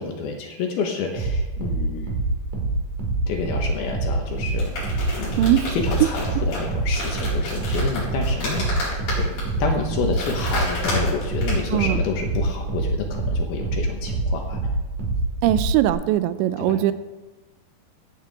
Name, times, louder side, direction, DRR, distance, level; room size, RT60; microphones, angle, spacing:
voice 1, 0.0-2.1 3.3-5.4 5.8-9.3 9.6-14.6 16.6-16.8, left 5 dB, 70° left, 1 dB, 2.8 m, -29 dB
sound 1, 1.2-15.9, right 2 dB, 55° right, 3.1 m, -26 dB
sound 2, 4.4-11.8, left 1 dB, 55° left, 5.9 m, -32 dB
voice 2, 15.4-16.9, right 13 dB, 90° right, 13 dB, 2.9 m, -20 dB
16.5 x 9.5 x 3.5 m, 1.2 s
omnidirectional pair, 5.1 m